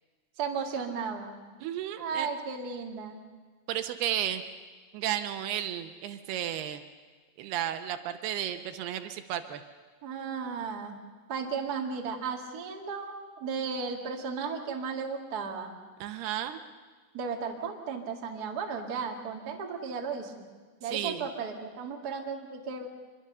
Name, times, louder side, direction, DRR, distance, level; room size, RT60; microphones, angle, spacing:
voice 1, 0.4-1.4 2.0-3.2 10.0-11.0 11.3-15.7 17.1-20.5 20.8-22.9, right 5 dB, 40° right, 2 dB, 1.5 m, -35 dB
voice 2, 1.6-2.3 3.7-4.4 4.9-6.8 7.4-9.6 16.0-16.6 20.9-21.2, right 11 dB, 75° right, 9 dB, 2.7 m, -33 dB
25.0 x 22.5 x 6.7 m, 1.4 s
omnidirectional pair, 4.9 m